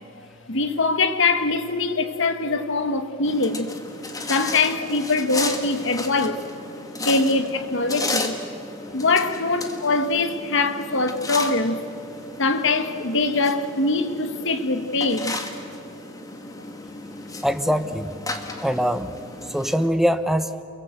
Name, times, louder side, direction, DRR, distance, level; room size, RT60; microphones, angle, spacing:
voice 1, 0.2-3.7 4.3-6.4 7.0-8.4 8.9-11.8 12.4-15.4, left 3 dB, 65° left, 1.6 m, -23 dB
sound 1, 3.2-19.9, left 2 dB, 15° left, 1.8 m, -34 dB
voice 2, 17.4-18.1 18.6-19.2 19.5-20.6, equal, ahead, 0.9 m, -22 dB
29.0 x 22.5 x 8.0 m
head